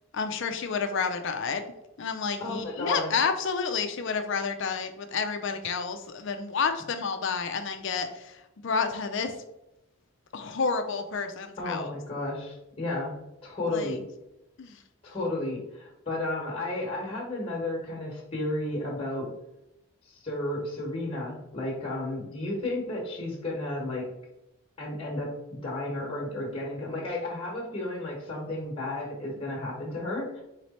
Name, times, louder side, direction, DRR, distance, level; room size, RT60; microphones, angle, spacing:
voice 1, 0.1-1.7 2.0-8.4 8.6-9.3 10.3-11.9 13.7-14.0 14.6-14.8, left 5 dB, 55° left, 7 dB, 0.4 m, -30 dB
voice 2, 2.4-3.2 11.6-13.1 13.4-14.0 15.0-19.3 20.1-24.1 24.8-30.4, left 2 dB, 25° left, -3 dB, 1.1 m, -33 dB
4.0 x 3.2 x 4.1 m, 0.89 s
head